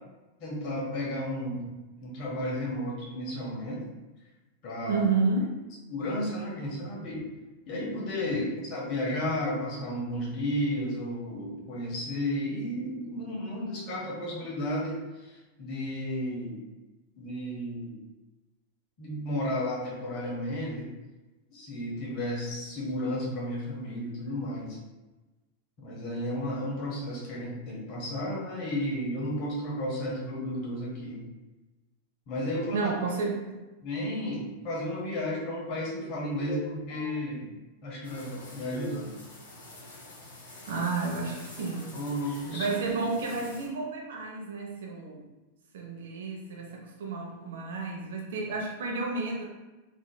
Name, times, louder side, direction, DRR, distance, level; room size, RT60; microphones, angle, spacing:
voice 1, 0.4-1.7 2.0-3.8 4.6-5.0 5.9-7.2 7.7-16.6 17.2-17.9 19.0-20.9 21.5-24.8 25.8-31.2 32.3-32.9 33.8-37.5 37.8-39.1 41.9-42.7, left 1 dB, 45° left, -4 dB, 1.2 m, -33 dB
voice 2, 4.9-5.6 32.7-33.6 40.7-41.9 42.5-45.2 45.7-49.5, right 4 dB, 65° right, 0 dB, 0.7 m, -31 dB
sound 1, 38.0-43.7, left 2 dB, 80° left, 1.0 m, -47 dB
3.8 x 3.0 x 2.2 m, 1.1 s
hypercardioid pair, 95°, 0 cm